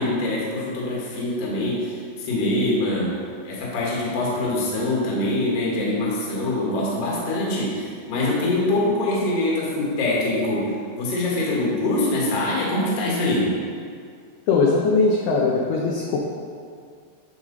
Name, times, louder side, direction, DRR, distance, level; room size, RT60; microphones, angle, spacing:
voice 1, 0.0-3.1 3.4-13.5, left 1 dB, 60° left, -5 dB, 1.6 m, -24 dB
voice 2, 14.5-16.2, left 3 dB, 85° left, -2 dB, 2.2 m, -20 dB
9.1 x 5.0 x 4.0 m, 2.2 s
omnidirectional pair, 5.3 m